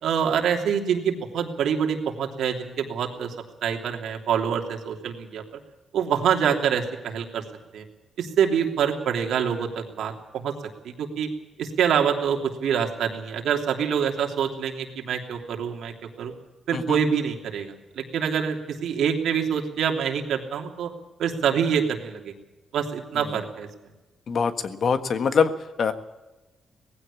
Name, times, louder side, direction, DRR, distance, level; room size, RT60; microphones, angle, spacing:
voice 1, 0.0-3.3 3.6-5.4 5.9-7.4 7.7-7.8 8.2-10.5 11.0-11.3 11.6-16.3 16.7-18.6 18.8-20.9 21.2-22.3 22.7-23.7, right 7 dB, 90° right, 3 dB, 3.1 m, -25 dB
voice 2, 24.3-25.5 25.8-25.9, left 6 dB, 50° left, 9 dB, 1.5 m, -23 dB
19.5 x 15.5 x 8.6 m, 1.1 s
wide cardioid pair, 145°, 0 cm